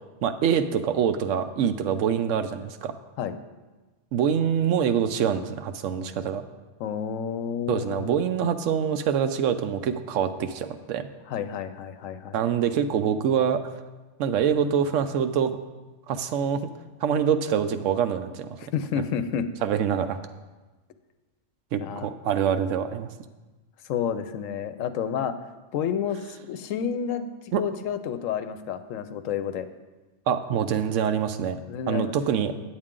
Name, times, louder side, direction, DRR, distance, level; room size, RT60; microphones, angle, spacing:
voice 1, 0.2-2.9 4.1-6.4 7.7-11.1 12.3-13.6 14.2-15.6 16.1-16.7 17.0-18.6 19.6-20.2 21.7-23.1 27.5-27.6 30.3-31.6 31.9-32.7, right 8 dB, 80° right, 9 dB, 0.9 m, -25 dB
voice 2, 6.8-8.1 11.3-12.4 18.6-19.5 21.8-22.1 23.9-25.4 25.7-27.3 27.6-29.7 31.7-32.2, left 8 dB, 90° left, 11 dB, 1.0 m, -30 dB
8.8 x 8.5 x 3.7 m, 1.2 s
omnidirectional pair, 1.3 m